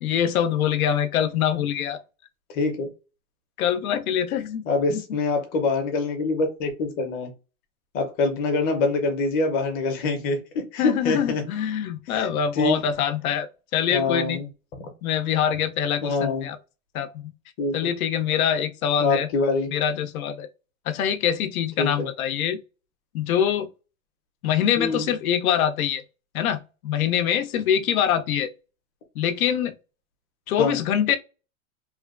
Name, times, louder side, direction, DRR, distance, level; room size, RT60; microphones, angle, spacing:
voice 1, 0.0-2.0 3.6-4.6 4.9-5.0 10.8-13.5 13.7-14.4 15.0-16.6 16.9-17.3 17.7-19.3 19.7-20.5 20.9-22.6 23.1-23.7 24.4-26.0 26.3-28.5 29.2-29.7 30.5-31.2, left 9 dB, 90° left, 0.6 m, -24 dB
voice 2, 2.5-2.9 4.7-7.3 7.9-11.4 12.1-12.3 12.5-12.8 13.9-14.5 16.0-16.5 17.6-17.9 19.0-19.7 21.8-22.1 24.8-25.1 30.6-30.8, left 3 dB, 20° left, 0.6 m, -25 dB
3.0 x 2.1 x 2.4 m
supercardioid pair, 155°, 42 cm